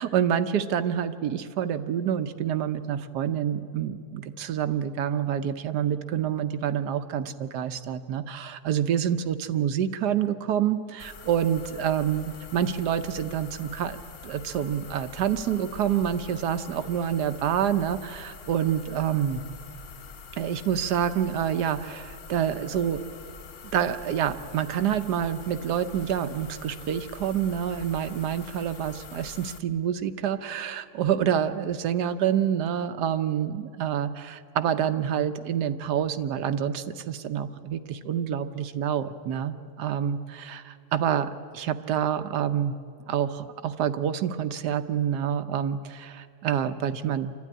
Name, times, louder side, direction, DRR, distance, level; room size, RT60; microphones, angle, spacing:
voice 1, 0.0-19.4 20.3-23.1 23.7-42.8 43.1-47.4, right 9 dB, 85° right, 10 dB, 1.4 m, -27 dB
sound 1, 11.0-29.6, left 5 dB, 55° left, 0.7 m, -45 dB
29.0 x 12.0 x 9.9 m, 2.5 s
omnidirectional pair, 1.7 m